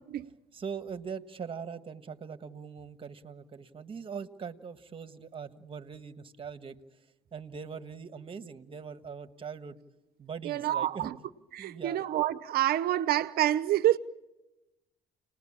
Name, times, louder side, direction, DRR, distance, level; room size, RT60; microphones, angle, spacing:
voice 1, 0.5-6.8 7.3-9.8 10.2-11.1 11.6-12.0, right 6 dB, 30° right, 1.5 m, -41 dB
voice 2, 10.4-11.1 11.5-14.0, right 13 dB, 65° right, 0.8 m, -27 dB
30.0 x 20.0 x 8.8 m
cardioid pair, 110°, 17 cm